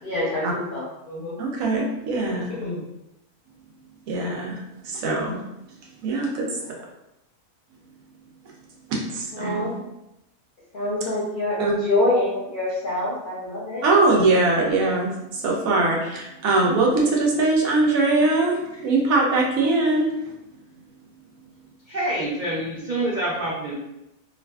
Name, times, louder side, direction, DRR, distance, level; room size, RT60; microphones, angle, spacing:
voice 1, 0.0-1.4 2.3-2.8 6.6-6.8 9.3-9.8 10.7-13.8, left 1 dB, 50° left, -6 dB, 0.7 m, -26 dB
voice 2, 1.4-2.5 4.1-5.4 6.0-6.5 8.9-9.7 11.6-11.7 13.8-20.1, right 2 dB, 80° right, -1 dB, 1.1 m, -22 dB
voice 3, 21.9-23.7, right 1 dB, 60° right, -6 dB, 0.4 m, -26 dB
2.6 x 2.4 x 2.2 m, 0.88 s
omnidirectional pair, 1.5 m